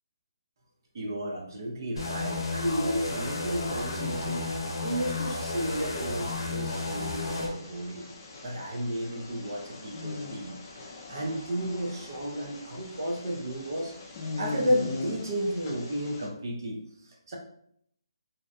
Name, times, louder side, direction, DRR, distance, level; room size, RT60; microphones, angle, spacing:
voice 1, 0.9-4.5 4.8-8.1 8.4-10.6 11.1-13.9 14.4-17.4, equal, 50° right, 0 dB, 0.6 m, -32 dB
sound 1, 2.0-7.5, left 3 dB, 70° left, 0.6 m, -33 dB
sound 2, 6.6-16.3, left 3 dB, 30° left, 0.4 m, -41 dB
2.5 x 2.1 x 2.5 m, 0.69 s
hypercardioid pair, 170°, 3 cm